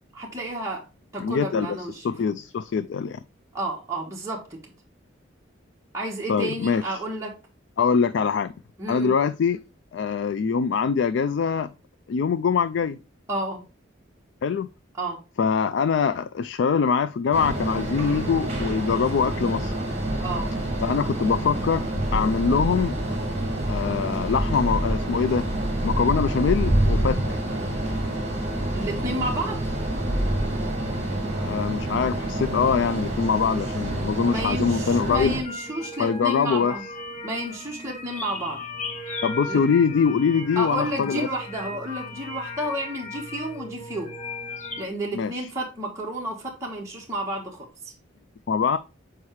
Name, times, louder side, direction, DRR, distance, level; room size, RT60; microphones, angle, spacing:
voice 1, 0.1-0.8 1.1-2.1 3.5-4.7 5.9-7.4 8.8-9.1 13.3-13.6 15.0-15.2 20.2-20.5 28.7-29.6 34.2-36.8 37.2-38.6 39.5-39.6 40.6-44.2 44.8-47.9, right 1 dB, 15° right, 1.3 m, -31 dB
voice 2, 1.2-3.2 6.3-7.0 7.8-8.5 8.9-9.6 9.9-11.7 12.1-13.0 14.4-14.7 15.4-19.7 20.8-21.8 22.1-23.0 23.7-25.5 25.8-27.2 31.4-35.4 36.0-36.7 39.2-41.3 45.1-45.5 48.5-48.8, left 6 dB, 65° left, 0.3 m, -23 dB
sound 1, 17.3-35.4, right 1 dB, 35° right, 2.0 m, -27 dB
sound 2, 35.4-44.9, left 2 dB, 35° left, 1.1 m, -37 dB
7.1 x 4.6 x 3.1 m
head